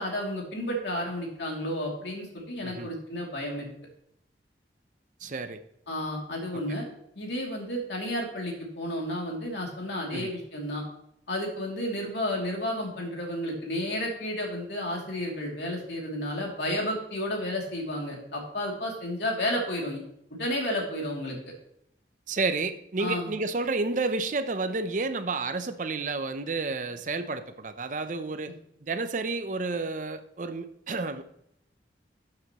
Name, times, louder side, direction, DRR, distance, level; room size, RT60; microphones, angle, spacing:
voice 1, 0.0-3.7 5.9-6.8 7.1-10.8 11.3-20.0 20.3-21.4 23.0-23.3 28.5-28.6, left 1 dB, 70° left, -1 dB, 2.7 m, -32 dB
voice 2, 5.2-5.6 10.1-10.3 22.3-28.5 28.8-31.2, right 3 dB, 45° right, 10 dB, 0.6 m, -30 dB
12.5 x 7.6 x 3.0 m, 0.75 s
head